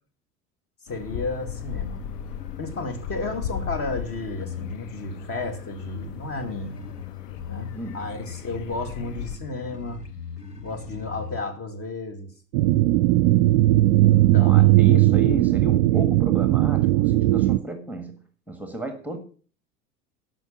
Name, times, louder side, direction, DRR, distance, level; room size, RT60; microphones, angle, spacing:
voice 1, 0.8-2.0 2.6-6.8 7.5-10.0 10.6-12.3 14.1-14.9, left 2 dB, 30° left, 6 dB, 2.4 m, -33 dB
sound 1, 0.9-9.4, left 11 dB, 55° left, 0.9 m, -37 dB
sound 2, 1.2-11.4, left 5 dB, 90° left, 1.3 m, -40 dB
voice 2, 7.7-8.1 14.0-18.2 18.5-19.2, right 1 dB, 5° right, 6 dB, 1.7 m, -33 dB
sound 3, 12.5-17.6, right 17 dB, 50° right, 0.6 m, -18 dB
13.5 x 6.1 x 7.2 m, 0.42 s
figure-of-eight pair, 80°, 46 cm